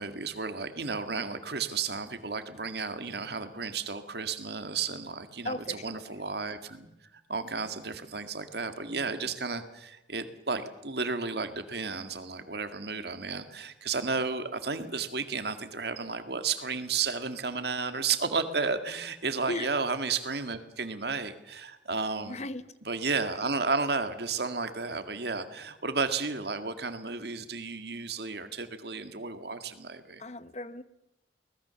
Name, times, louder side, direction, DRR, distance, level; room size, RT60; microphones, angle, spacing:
voice 1, 0.0-6.9 7.3-22.4 22.9-30.2, right 4 dB, 60° right, 9 dB, 1.9 m, -33 dB
voice 2, 5.4-5.8 19.5-19.7 22.3-22.7 30.2-30.8, left 2 dB, 35° left, 14 dB, 1.0 m, -36 dB
23.5 x 19.5 x 7.0 m, 0.90 s
head